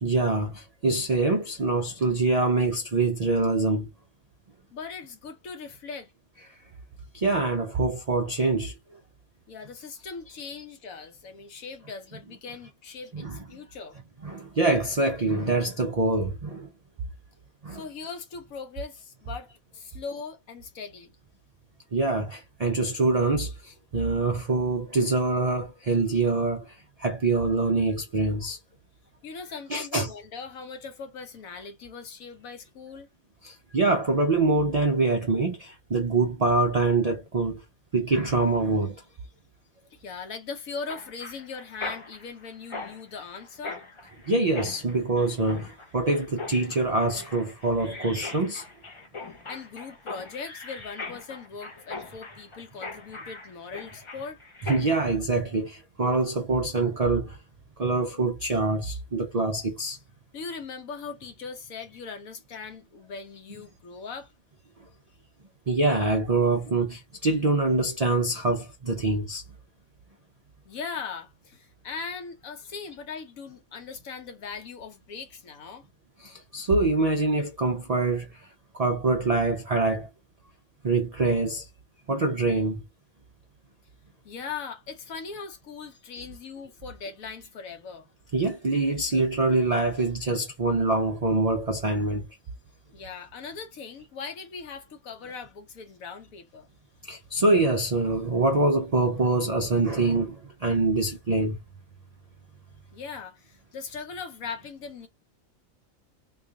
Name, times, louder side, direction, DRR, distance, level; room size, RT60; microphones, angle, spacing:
voice 1, 0.0-3.9 7.1-8.7 13.1-13.4 14.2-16.7 17.6-17.8 21.9-28.6 29.7-30.1 33.4-37.6 37.9-39.0 44.3-48.6 54.7-57.4 57.8-60.0 65.7-69.4 76.2-78.4 78.7-80.1 80.8-81.7 82.1-82.8 88.3-92.3 97.0-101.6, right 3 dB, 75° right, 0.3 m, -25 dB
voice 2, 4.7-6.1 9.5-14.0 17.7-21.2 29.2-33.1 39.9-43.8 49.5-54.4 60.3-64.3 70.6-75.9 84.2-88.1 92.9-96.7 102.9-105.1, left 5 dB, 75° left, 1.3 m, -39 dB
Mechanisms, 40.9-55.1, left 3 dB, 35° left, 0.5 m, -41 dB
3.0 x 2.4 x 3.8 m
omnidirectional pair, 1.5 m